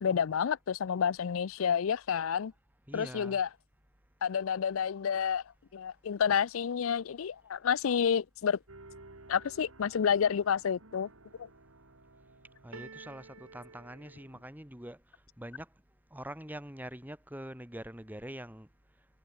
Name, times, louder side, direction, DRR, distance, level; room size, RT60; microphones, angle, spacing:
voice 1, 0.0-2.5 2.9-3.5 4.2-5.4 5.7-8.6 9.3-11.1 11.4-11.5, left 7 dB, 85° left, 0.4 m, -29 dB
voice 2, 2.9-3.4 12.6-15.7 16.1-18.7, right 1 dB, 10° right, 3.1 m, -44 dB
sound 1, 8.7-14.5, right 3 dB, 90° right, 2.8 m, -53 dB
head